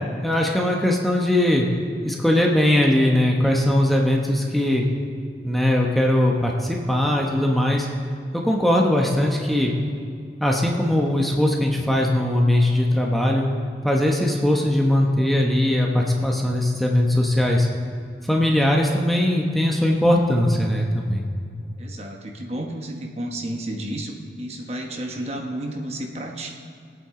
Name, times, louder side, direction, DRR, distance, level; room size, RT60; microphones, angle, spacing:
voice 1, 0.2-1.7 2.0-4.8 5.4-7.9 8.3-9.7 10.4-13.5 13.8-17.7 18.3-21.3, left 1 dB, ahead, -1 dB, 1.0 m, -20 dB
voice 2, 21.8-26.5, right 1 dB, 35° right, 2 dB, 1.1 m, -31 dB
22.0 x 8.6 x 3.8 m, 2.3 s
head